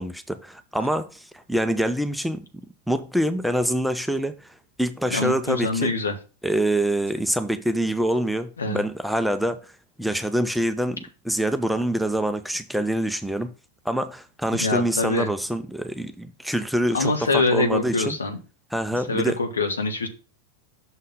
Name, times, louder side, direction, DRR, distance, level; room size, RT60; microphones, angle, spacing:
voice 1, 0.0-2.4 2.9-5.9 6.4-9.7 10.0-13.5 13.9-18.2 18.7-19.4, right 1 dB, ahead, 0.5 m, -25 dB
voice 2, 5.1-6.1 8.6-8.8 14.6-15.3 16.9-18.4 19.1-20.1, left 3 dB, 70° left, 1.1 m, -24 dB
6.3 x 3.7 x 5.2 m
figure-of-eight pair, 90°, 0 cm